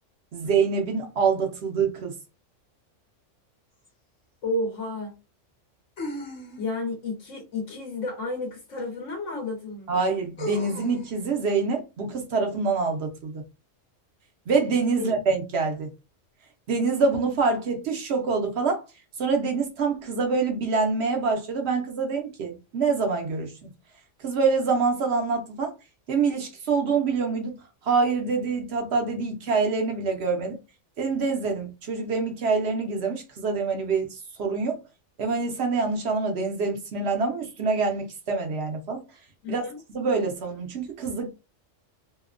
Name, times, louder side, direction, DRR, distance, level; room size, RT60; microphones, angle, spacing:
voice 1, 0.3-2.2 9.9-13.4 14.5-15.9 16.7-18.8 19.2-23.7 24.2-25.7 26.1-27.5 27.8-30.6 31.0-34.8 35.2-39.0 39.5-41.3, right 4 dB, 65° right, 0.8 m, -26 dB
sound 1, 3.9-4.0 6.0-6.9 8.8-8.9 10.4-11.1, left 1 dB, 55° left, 1.2 m, -35 dB
voice 2, 4.4-5.2 6.6-9.9 15.0-15.1 39.4-39.8, left 2 dB, 75° left, 1.1 m, -31 dB
2.8 x 2.1 x 2.4 m
omnidirectional pair, 1.3 m